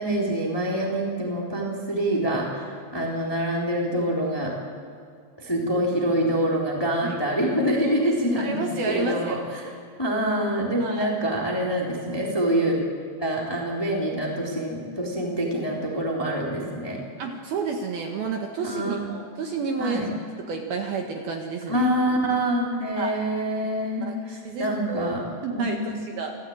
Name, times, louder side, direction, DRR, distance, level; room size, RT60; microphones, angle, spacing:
voice 1, 0.0-2.7 2.9-4.5 5.4-8.6 8.9-9.4 10.0-12.8 13.2-17.0 18.6-19.1 19.8-20.1 21.7-25.2 25.5-25.9, right 1 dB, 5° left, -2 dB, 2.5 m, -25 dB
voice 2, 8.4-9.4 10.8-11.1 17.2-20.0 20.4-21.9 23.0-23.2 24.1-25.1 25.4-26.3, right 4 dB, 65° right, 2 dB, 2.9 m, -30 dB
27.0 x 15.0 x 8.8 m, 2.2 s
omnidirectional pair, 5.4 m